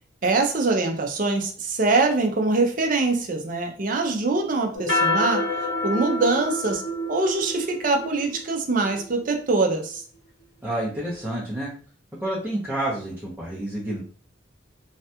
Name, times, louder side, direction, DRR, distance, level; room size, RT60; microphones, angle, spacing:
voice 1, 0.2-5.5 5.8-6.8 7.1-10.0, right 3 dB, 45° right, 3 dB, 0.5 m, -23 dB
sound 1, 4.7-9.5, left 2 dB, 85° left, 1.4 m, -28 dB
voice 2, 10.6-11.7 12.2-14.0, right 1 dB, 10° right, -7 dB, 0.7 m, -29 dB
3.2 x 2.4 x 2.8 m, 0.43 s
head